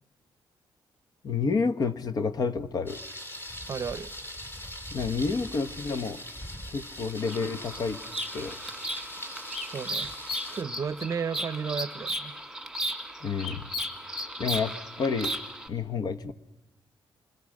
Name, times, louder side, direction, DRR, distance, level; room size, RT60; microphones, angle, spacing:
voice 1, 1.2-3.0 4.9-6.2 6.7-8.0 8.3-8.6 13.2-13.7 14.4-15.3 15.7-16.3, left 5 dB, 45° left, 10 dB, 1.0 m, -29 dB
Thunder, 2.9-10.6, left 1 dB, 25° left, 2.8 m, -41 dB
voice 2, 3.7-4.1 9.7-10.1 10.5-12.3, right 6 dB, 40° right, 15 dB, 0.7 m, -33 dB
Bird vocalization bird call bird song, 7.2-15.7, equal, ahead, 1.8 m, -35 dB
27.0 x 22.5 x 6.4 m, 1.0 s
cardioid pair, 135°, 9 cm